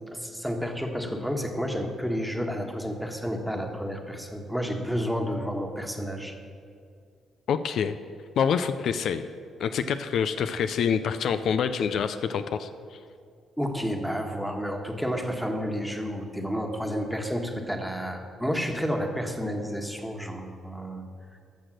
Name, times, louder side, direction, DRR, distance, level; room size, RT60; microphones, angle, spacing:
voice 1, 0.1-6.3 13.6-21.0, equal, ahead, 3 dB, 1.4 m, -30 dB
voice 2, 7.5-8.0 8.4-9.3 9.6-12.7, left 7 dB, 70° left, 10 dB, 0.5 m, -26 dB
13.5 x 6.5 x 6.5 m, 2.3 s
cardioid pair, 90°, 0 cm